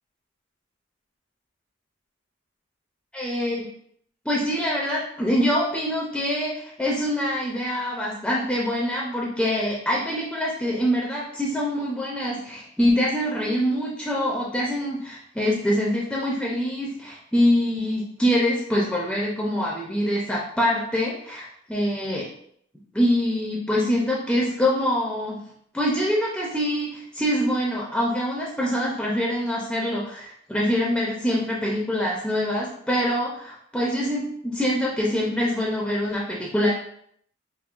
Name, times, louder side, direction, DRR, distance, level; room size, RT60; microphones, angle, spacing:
voice 1, 3.1-3.7 4.3-22.3 22.9-25.4 25.7-36.7, equal, 5° left, -4 dB, 0.4 m, -24 dB
5.2 x 2.6 x 2.4 m, 0.67 s
head